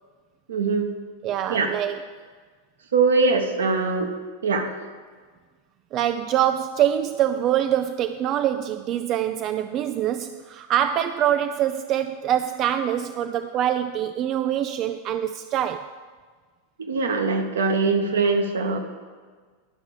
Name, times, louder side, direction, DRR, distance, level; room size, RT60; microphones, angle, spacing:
voice 1, 0.5-0.9 1.5-1.7 2.9-4.1 4.4-4.7 16.8-18.8, right 4 dB, 65° right, 1.1 m, -22 dB
voice 2, 1.2-2.3 5.9-15.9, right 10 dB, 35° right, 0.3 m, -24 dB
11.5 x 5.9 x 6.4 m
figure-of-eight pair, 90°, 0 cm